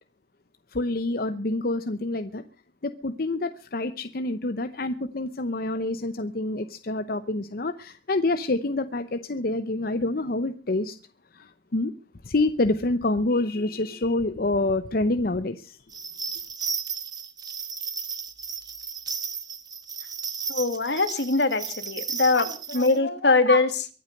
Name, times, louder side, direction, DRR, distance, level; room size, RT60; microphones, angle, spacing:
voice 1, 0.7-2.4 2.8-11.0 11.3-11.9 12.2-15.8, left 2 dB, 55° left, 0.8 m, -27 dB
sound 1, 15.9-23.0, right 6 dB, 25° right, 1.4 m, -34 dB
voice 2, 20.5-23.9, left 3 dB, 75° left, 1.9 m, -22 dB
23.5 x 8.4 x 6.6 m
head